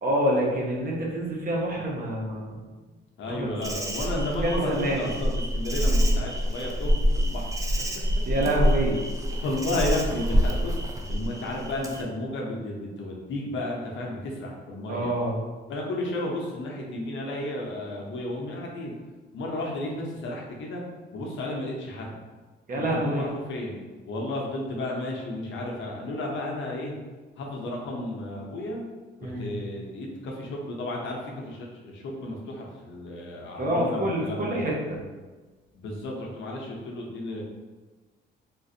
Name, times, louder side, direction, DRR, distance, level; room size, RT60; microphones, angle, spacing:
voice 1, 0.0-2.6 3.3-3.5 4.1-5.1 8.3-9.0 14.9-15.3 22.7-23.3 29.2-29.6 33.6-35.0, right 1 dB, 45° right, -2 dB, 0.9 m, -27 dB
voice 2, 3.2-7.6 9.4-10.7 11.1-15.1 15.7-18.9 19.3-20.8 21.1-22.2 22.9-23.8 24.1-26.9 27.4-28.8 29.2-34.6 35.7-37.4, left 1 dB, 75° left, -1 dB, 0.7 m, -33 dB
Insect, 3.6-12.0, equal, 15° right, 0.4 m, -26 dB
3.7 x 2.5 x 2.7 m, 1.3 s
cardioid pair, 90°, 20 cm